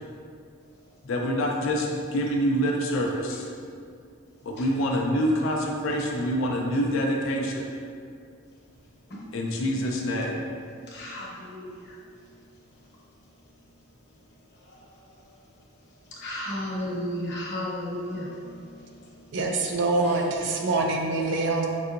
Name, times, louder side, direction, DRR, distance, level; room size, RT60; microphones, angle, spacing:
voice 1, 1.0-3.4 4.4-7.7 9.3-10.4, equal, 70° left, 0 dB, 0.4 m, -26 dB
voice 2, 10.6-12.0 14.5-15.3 16.1-19.4 20.0-20.2, left 1 dB, 50° left, -6 dB, 0.9 m, -35 dB
voice 3, 19.3-21.7, right 3 dB, 55° right, 1 dB, 0.4 m, -25 dB
5.5 x 2.7 x 2.5 m, 2.3 s
head